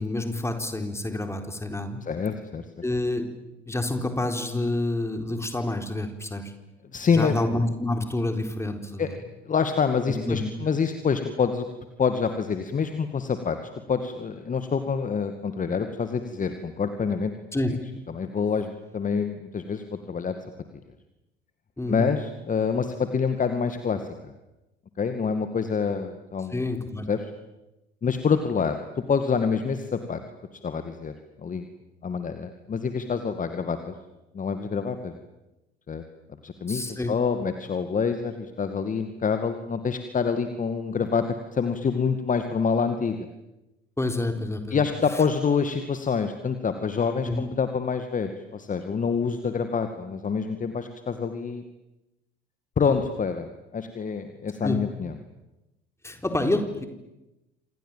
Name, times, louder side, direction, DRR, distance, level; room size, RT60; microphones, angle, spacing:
voice 1, 0.0-2.0 2.8-3.3 3.7-6.5 7.1-9.2 10.2-10.4 17.5-17.7 21.8-22.1 26.5-27.1 36.7-37.1 44.0-44.8 47.2-47.5 54.6-54.8 56.0-56.9, left 2 dB, 10° left, 6 dB, 4.3 m, -28 dB
voice 2, 2.0-2.6 6.9-7.3 9.0-9.1 9.5-11.7 12.0-13.6 13.9-17.3 18.1-20.3 21.9-24.3 25.0-26.6 27.1-27.3 28.0-28.8 29.1-30.2 30.6-31.1 31.4-31.7 32.0-33.9 34.3-35.2 35.9-36.0 36.4-41.2 41.5-43.3 44.7-51.6 52.8-55.2, left 5 dB, 25° left, 8 dB, 2.2 m, -26 dB
29.0 x 27.0 x 7.6 m, 0.98 s
figure-of-eight pair, 65°, 31 cm